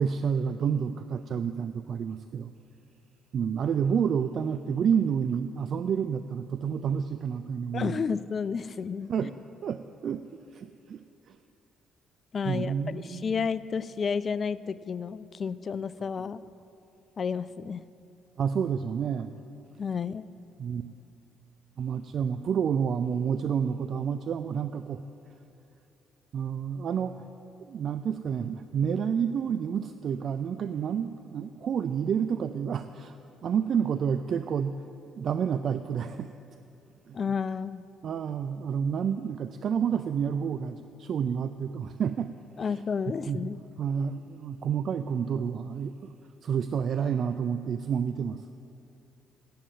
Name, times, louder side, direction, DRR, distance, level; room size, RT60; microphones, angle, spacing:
voice 1, 0.0-2.5 3.3-8.0 9.1-9.3 9.6-10.2 10.5-11.0 11.3-11.4 12.5-13.3 18.4-19.4 20.6-20.8 21.8-25.0 26.3-27.3 27.6-33.2 33.4-34.8 35.1-36.3 37.1-37.2 38.0-42.3 42.6-42.7 43.3-43.5 43.8-46.1 46.4-48.4, right 7 dB, 55° right, 10 dB, 0.3 m, -29 dB
voice 2, 7.7-9.3 12.3-16.4 17.2-17.8 19.8-20.3 37.1-37.8 42.6-43.6, left 6 dB, 45° left, 16 dB, 0.3 m, -31 dB
8.5 x 7.5 x 8.8 m, 2.8 s
hypercardioid pair, 50°, 0 cm